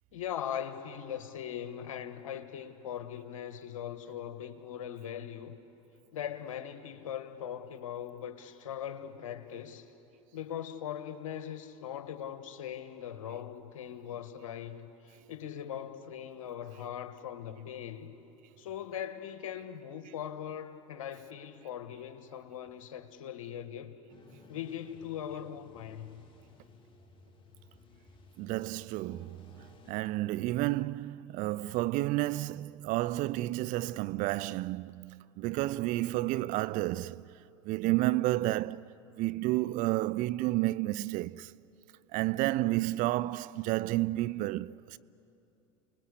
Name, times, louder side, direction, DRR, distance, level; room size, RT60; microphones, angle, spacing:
voice 1, 0.1-5.6 6.1-9.9 10.3-18.1 18.6-23.9 24.5-26.2, left 9 dB, 75° left, 1.5 m, -40 dB
sound 1, 24.1-29.9, left 4 dB, 30° left, 2.5 m, -58 dB
voice 2, 28.4-29.4 29.9-37.2 37.6-38.9 39.2-41.5 42.1-45.0, right 17 dB, 50° right, 0.5 m, -31 dB
29.5 x 20.5 x 8.3 m
hypercardioid pair, 80°, 17 cm